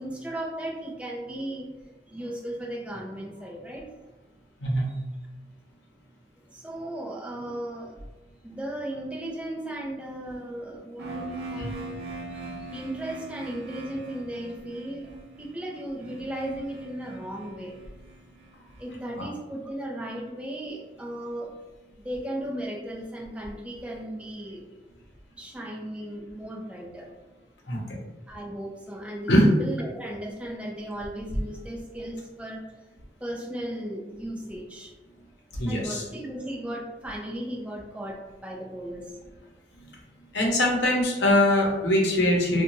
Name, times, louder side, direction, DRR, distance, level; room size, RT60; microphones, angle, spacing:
voice 1, 0.0-1.7 2.1-3.8 6.5-7.9 8.4-12.1 12.7-15.1 15.4-17.7 18.8-21.5 22.0-24.6 25.4-27.1 28.3-29.3 29.6-32.6 33.2-34.9 35.7-39.1 41.6-41.7, right 1 dB, 5° right, -1 dB, 0.3 m, -36 dB
sound 1, 11.0-18.8, right 2 dB, 65° right, 0.5 m, -41 dB
voice 2, 35.6-36.0 40.3-42.6, left 1 dB, 80° left, -1 dB, 0.7 m, -22 dB
2.7 x 2.2 x 2.9 m, 1.1 s
head